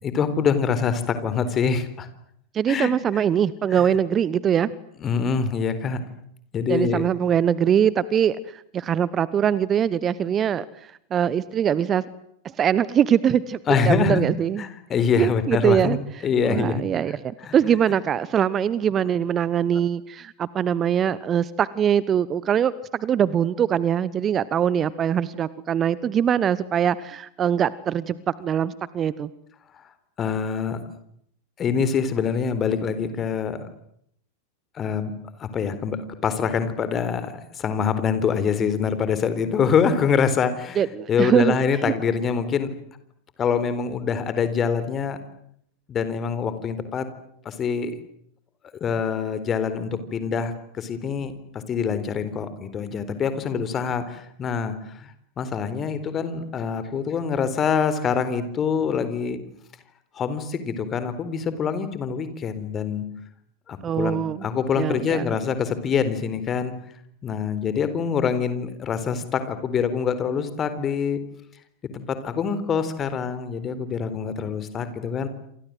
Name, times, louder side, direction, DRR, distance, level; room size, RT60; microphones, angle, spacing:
voice 1, 0.0-2.1 2.7-3.2 3.7-3.9 5.0-6.0 6.5-7.0 13.7-14.3 14.6-16.0 16.2-16.8 17.4-17.6 19.7-19.8 30.2-30.8 31.6-33.7 34.7-35.1 35.4-40.8 41.1-42.7 43.4-45.2 45.9-47.1 47.4-47.9 48.8-51.3 51.7-59.4 60.1-63.0 63.7-66.7 67.2-71.2 71.9-75.3, left 6 dB, 25° left, 12 dB, 4.0 m, -25 dB
voice 2, 2.5-4.7 6.7-12.0 12.4-14.6 15.2-16.0 16.4-29.3 40.8-41.5 41.8-41.9 63.8-64.5 64.8-65.2, right 9 dB, 25° right, 19 dB, 1.1 m, -22 dB
28.0 x 27.0 x 7.9 m, 0.70 s
figure-of-eight pair, 90°, 0 cm